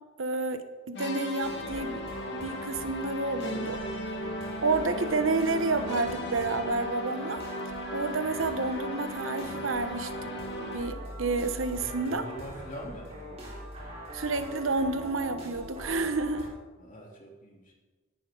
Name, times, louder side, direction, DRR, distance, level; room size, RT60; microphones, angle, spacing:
voice 1, 0.2-2.0 2.3-3.8 4.6-7.4 7.9-12.2 14.1-16.5, right 3 dB, 85° right, 9 dB, 1.1 m, -30 dB
sound 1, 0.9-11.1, left 1 dB, 60° left, 1.7 m, -37 dB
sound 2, 1.4-16.5, right 1 dB, 35° right, 4.1 m, -42 dB
voice 2, 11.7-13.5 16.8-17.7, right 1 dB, 40° left, -2 dB, 3.3 m, -43 dB
17.0 x 11.0 x 3.9 m, 1.3 s
head